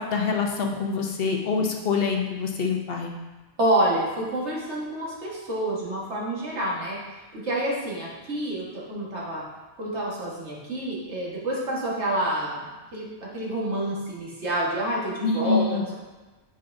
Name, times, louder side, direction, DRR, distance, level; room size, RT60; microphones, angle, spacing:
voice 1, 0.0-3.1 15.2-15.8, left 4 dB, 60° left, 2 dB, 0.9 m, -25 dB
voice 2, 3.6-9.4 9.8-15.9, right 1 dB, 75° right, -5 dB, 1.8 m, -28 dB
7.9 x 5.4 x 2.6 m, 1.2 s
omnidirectional pair, 1.2 m